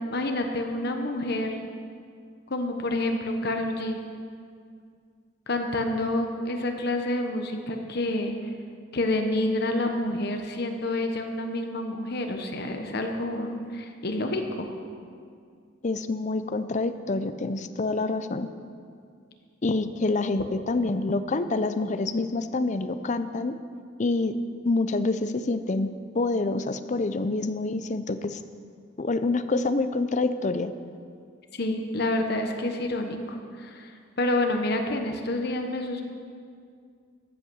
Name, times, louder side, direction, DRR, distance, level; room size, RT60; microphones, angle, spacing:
voice 1, 0.1-1.6 2.5-4.0 5.5-8.3 8.9-14.7 31.6-33.9 34.2-36.0, left 1 dB, 55° left, 4 dB, 1.1 m, -28 dB
voice 2, 15.8-18.5 19.6-23.6 24.0-24.4 24.6-25.9 26.1-28.4 29.0-30.7, left 3 dB, 40° left, 12 dB, 0.6 m, -27 dB
13.5 x 8.6 x 6.3 m, 2.2 s
head